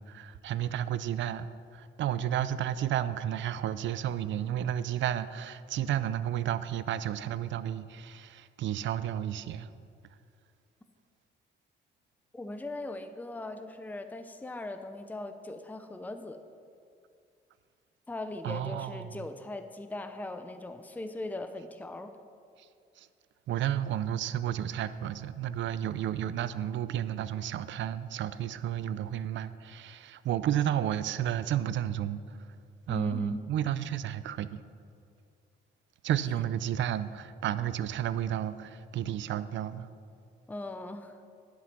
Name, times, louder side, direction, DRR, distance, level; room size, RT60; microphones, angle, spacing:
voice 1, 0.0-9.7 18.4-19.2 22.6-22.7 23.0-23.1 23.5-32.4 32.9-34.6 36.0-39.9, right 10 dB, 70° right, 0.5 m, -32 dB
voice 2, 12.3-16.4 18.1-22.1 32.9-33.5 40.5-41.2, left 2 dB, 10° left, 0.6 m, -39 dB
11.0 x 7.8 x 6.0 m
cardioid pair, 90°, 20 cm